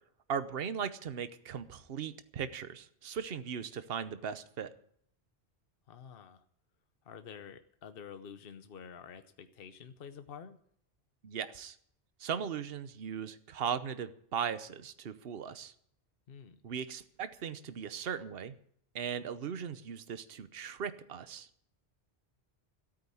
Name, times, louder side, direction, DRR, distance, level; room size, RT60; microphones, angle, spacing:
voice 1, 0.3-4.7 11.2-11.8 12.2-15.7 16.6-18.5 18.9-21.5, right 7 dB, 60° right, 12 dB, 1.1 m, -38 dB
voice 2, 5.9-6.4 7.0-10.6 16.3-16.6, left 7 dB, 60° left, 9 dB, 1.0 m, -49 dB
13.5 x 8.8 x 8.4 m, 0.65 s
omnidirectional pair, 1.1 m